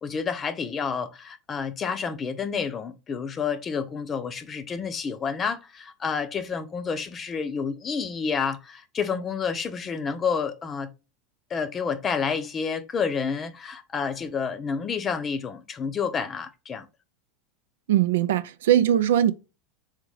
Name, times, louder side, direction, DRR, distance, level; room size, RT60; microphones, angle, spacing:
voice 1, 0.0-10.9 11.5-16.9, left 6 dB, 30° left, 0.7 m, -29 dB
voice 2, 17.9-19.3, right 11 dB, 75° right, 0.4 m, -20 dB
3.7 x 3.5 x 3.1 m
hypercardioid pair, 90°, 0 cm